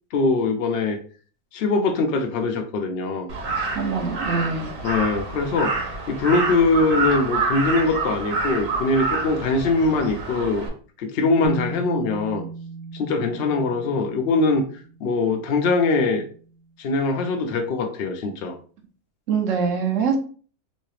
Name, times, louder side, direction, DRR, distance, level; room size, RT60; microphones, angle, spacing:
voice 1, 0.1-1.0 1.5-3.3 4.8-5.7 6.1-10.7 11.0-12.5 12.9-14.6 15.0-16.2 16.8-18.5, left 3 dB, 70° left, 4 dB, 0.5 m, -22 dB
Crow, 3.3-10.7, right 3 dB, 80° right, 1.5 m, -27 dB
voice 2, 3.7-4.7 19.3-20.2, right 6 dB, 65° right, 3 dB, 1.0 m, -23 dB
Bass guitar, 11.4-15.4 16.5-16.6, right 2 dB, 50° left, 1.0 m, -36 dB
3.1 x 2.8 x 3.1 m, 0.41 s
omnidirectional pair, 1.5 m